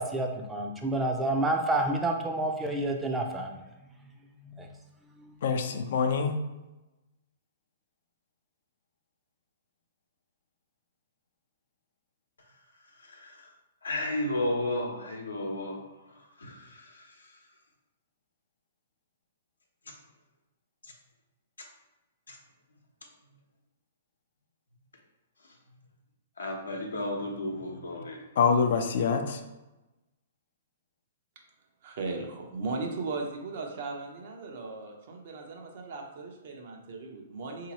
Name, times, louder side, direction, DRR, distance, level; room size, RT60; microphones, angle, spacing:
voice 1, 0.0-4.1 4.4-4.7 5.2-5.4, right 2 dB, 10° right, 2 dB, 0.5 m, -30 dB
voice 2, 5.4-6.4 28.4-29.4, left 5 dB, 65° left, 7 dB, 0.4 m, -25 dB
voice 3, 13.0-13.5 13.8-17.4 20.8-20.9 22.3-22.4 26.4-28.2, left 1 dB, 90° left, 1 dB, 0.8 m, -34 dB
voice 4, 31.8-37.7, right 3 dB, 60° right, 1 dB, 0.8 m, -37 dB
3.8 x 2.8 x 2.9 m, 1.0 s
hypercardioid pair, 125°, 0 cm